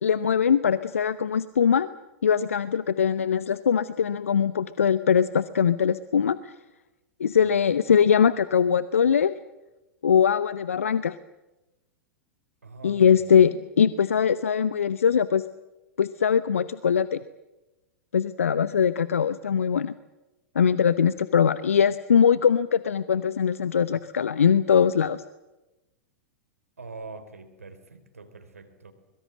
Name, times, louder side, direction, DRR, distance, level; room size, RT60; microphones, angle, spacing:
voice 1, 0.0-1.9 2.2-6.5 7.2-9.3 10.0-11.2 12.8-15.5 16.0-17.2 18.1-19.9 20.5-25.2, left 7 dB, 65° left, 16 dB, 0.8 m, -22 dB
voice 2, 12.6-13.3 26.8-28.9, right 3 dB, 75° right, 8 dB, 3.9 m, -43 dB
24.5 x 22.5 x 7.6 m, 1.0 s
figure-of-eight pair, 95°, 8 cm